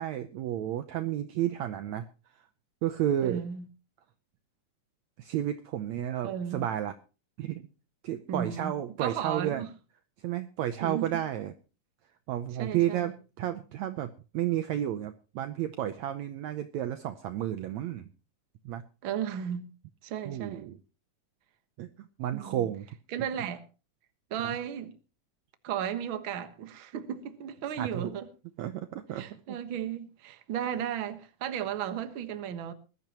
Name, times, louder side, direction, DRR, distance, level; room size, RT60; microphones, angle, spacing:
voice 1, 0.0-2.1 2.8-3.4 5.2-6.9 7.4-7.6 8.0-9.6 10.2-11.5 12.3-18.1 18.7-18.8 20.3-20.8 21.8-22.9 24.4-24.6 27.8-28.1 28.6-29.4, right 12 dB, 70° right, 1.8 m, -32 dB
voice 2, 3.2-3.6 6.2-6.7 8.3-9.7 10.8-11.2 12.6-13.1 19.0-19.7 20.0-20.7 22.3-22.7 23.1-23.6 24.3-24.9 25.6-28.3 29.1-32.7, right 9 dB, 50° right, 1.7 m, -35 dB
20.5 x 14.0 x 3.0 m
omnidirectional pair, 3.7 m